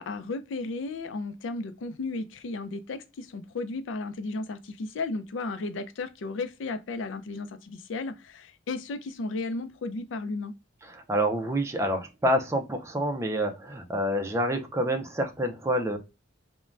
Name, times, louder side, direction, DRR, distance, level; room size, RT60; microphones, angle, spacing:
voice 1, 0.0-10.6, left 3 dB, 80° left, 0.4 m, -34 dB
voice 2, 10.9-16.0, equal, 15° right, 0.4 m, -27 dB
3.2 x 2.1 x 2.4 m
head